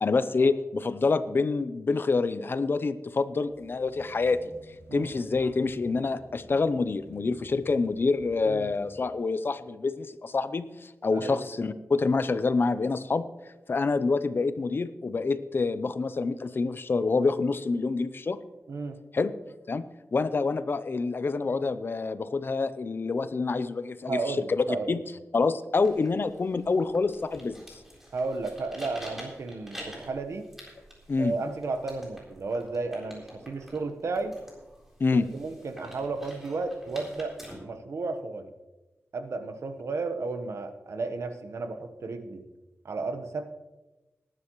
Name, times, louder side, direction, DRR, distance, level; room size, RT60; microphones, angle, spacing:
voice 1, 0.0-4.4 4.9-13.3 13.7-18.4 19.1-19.3 19.7-19.8 20.1-25.0 25.3-27.6 31.1-31.3 35.0-35.3, left 4 dB, 45° left, 13 dB, 0.6 m, -27 dB
sound 1, 3.4-9.4, left 1 dB, 65° left, 3.5 m, -52 dB
voice 2, 24.1-24.9 28.1-30.5 31.2-34.4 35.1-37.4 37.6-38.5 39.1-42.4 42.8-43.5, right 3 dB, 70° right, 7 dB, 1.1 m, -33 dB
sound 2, 25.7-37.5, equal, 5° right, 3.8 m, -47 dB
19.0 x 10.5 x 3.1 m, 1.1 s
wide cardioid pair, 130°, 5 cm